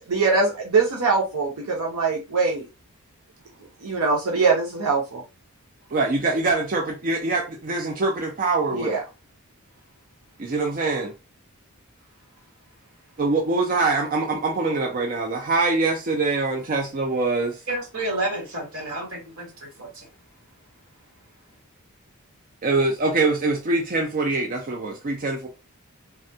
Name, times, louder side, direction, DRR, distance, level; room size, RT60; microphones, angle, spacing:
voice 1, 0.1-2.6 3.8-5.2 8.7-9.0, right 4 dB, 80° right, 0.7 m, -22 dB
voice 2, 5.9-9.0 10.4-11.1 13.2-17.6 22.6-25.5, right 3 dB, 40° right, 0.4 m, -24 dB
voice 3, 17.7-20.1, right 2 dB, 65° right, 1.5 m, -30 dB
3.4 x 2.2 x 2.6 m
head